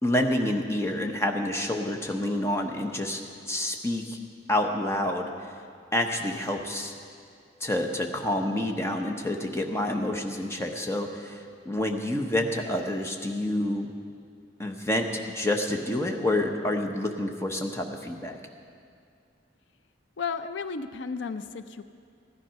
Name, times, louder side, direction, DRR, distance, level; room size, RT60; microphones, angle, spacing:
voice 1, 0.0-3.2 3.5-4.2 4.5-5.3 5.9-6.9 7.6-13.9 14.6-15.1 15.3-18.4, left 1 dB, 15° left, 3 dB, 0.9 m, -28 dB
voice 2, 20.2-21.8, left 5 dB, 80° left, 11 dB, 0.5 m, -33 dB
15.0 x 10.5 x 5.7 m, 2.3 s
head